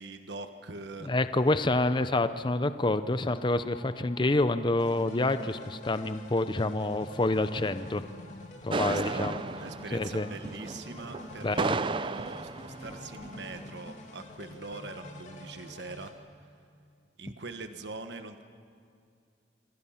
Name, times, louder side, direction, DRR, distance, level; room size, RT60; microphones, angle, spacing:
voice 1, 0.0-1.1 8.8-16.1 17.2-18.4, right 3 dB, 75° right, 7 dB, 1.3 m, -42 dB
voice 2, 1.0-8.0 8.6-9.4 9.9-10.3 11.4-11.8, left 2 dB, 25° left, 11 dB, 0.6 m, -27 dB
sound 1, 1.4-16.1, left 3 dB, 80° left, 7.4 m, -55 dB
sound 2, 4.8-16.1, left 1 dB, 45° left, 2.5 m, -47 dB
sound 3, 8.7-13.7, right 3 dB, 30° right, 0.5 m, -34 dB
26.5 x 25.0 x 5.8 m, 2.4 s
head